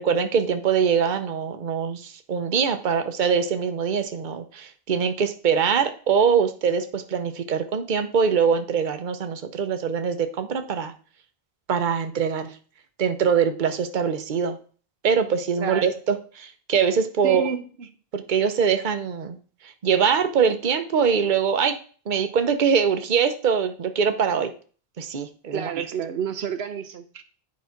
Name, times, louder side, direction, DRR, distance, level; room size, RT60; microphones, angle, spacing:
voice 1, 0.0-10.9 11.7-12.5 13.0-14.6 15.0-17.4 18.1-19.4 19.8-21.8 22.1-24.5 25.0-25.8, right 6 dB, 50° right, 8 dB, 1.0 m, -23 dB
voice 2, 17.2-17.7 25.5-27.2, right 7 dB, 85° right, 9 dB, 1.1 m, -29 dB
9.6 x 4.2 x 5.8 m, 0.40 s
omnidirectional pair, 1.0 m